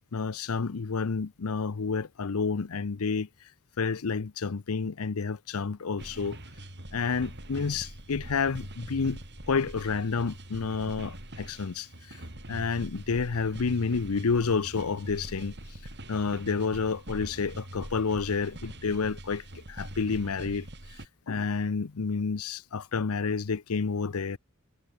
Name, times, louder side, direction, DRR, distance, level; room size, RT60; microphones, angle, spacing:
voice 1, 0.1-3.3 3.8-6.4 6.9-9.2 9.5-12.2 12.5-15.5 16.1-20.7 21.3-24.4, left 5 dB, 80° left, 0.7 m, -29 dB
sound 1, 6.0-21.1, right 1 dB, 50° right, 7.4 m, -43 dB
head